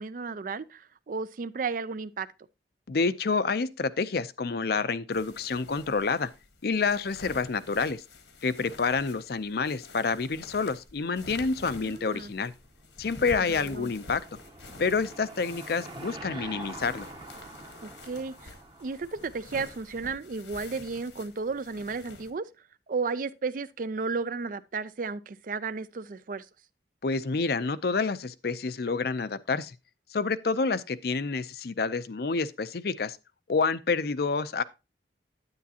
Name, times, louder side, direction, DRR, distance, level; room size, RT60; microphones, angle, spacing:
voice 1, 0.0-2.3 11.8-12.3 13.5-13.9 17.8-18.5 18.8-22.5 22.9-26.5, right 4 dB, 50° right, 0.4 m, -33 dB
voice 2, 2.9-6.3 6.6-8.0 8.4-12.5 13.0-14.2 14.8-17.1 27.0-29.7 30.1-33.2 33.5-34.6, left 4 dB, 60° left, 0.5 m, -28 dB
sound 1, 5.1-22.3, left 2 dB, 80° left, 1.5 m, -48 dB
Car passing by / Engine, 13.2-19.9, right 2 dB, 25° right, 0.9 m, -45 dB
9.6 x 9.3 x 2.8 m
head